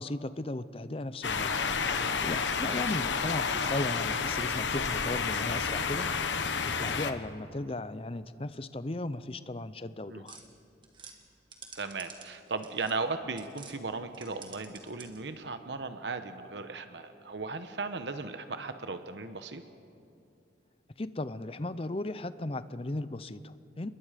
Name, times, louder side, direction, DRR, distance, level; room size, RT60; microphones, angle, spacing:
voice 1, 0.0-1.5 1.9-10.4 21.0-23.9, left 2 dB, 30° left, 14 dB, 0.6 m, -36 dB
sound 1, 1.2-7.1, left 5 dB, 90° left, 1.1 m, -30 dB
voice 2, 2.6-3.0 10.1-10.2 11.7-19.6, right 3 dB, 75° right, 9 dB, 1.0 m, -37 dB
sound 2, 10.3-13.8 14.1-15.3, right 5 dB, 25° right, 1.9 m, -51 dB
29.0 x 21.5 x 5.1 m, 2.5 s
head